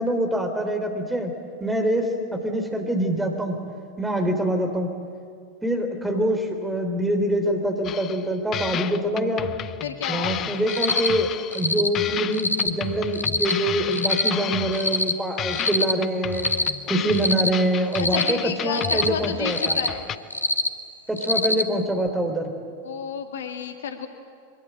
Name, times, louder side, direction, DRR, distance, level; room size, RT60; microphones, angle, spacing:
voice 1, 0.0-1.3 1.6-3.6 4.0-4.9 5.6-9.5 10.1-11.3 11.5-16.5 16.9-19.8 21.1-22.5, right 1 dB, 5° right, 4 dB, 3.6 m, -25 dB
sound 1, 7.8-8.3 8.5-11.7 11.9-15.1 15.4-20.2, left 10 dB, 30° left, 0.7 m, -32 dB
voice 2, 9.8-10.3 18.0-20.1 22.8-24.1, left 7 dB, 60° left, 6 dB, 1.8 m, -31 dB
Cricket, 10.7-11.1 11.5-11.9 12.3-12.7 13.1-13.5 13.9-14.3 14.7-15.1 15.5-15.9 16.3-16.7 17.1-17.5 17.9-18.3 18.7-19.1 19.5-19.9 20.3-20.7 21.2-21.6, left 2 dB, 85° left, 1.2 m, -24 dB
23.0 x 22.5 x 8.9 m, 2.2 s
figure-of-eight pair, 90°, 0 cm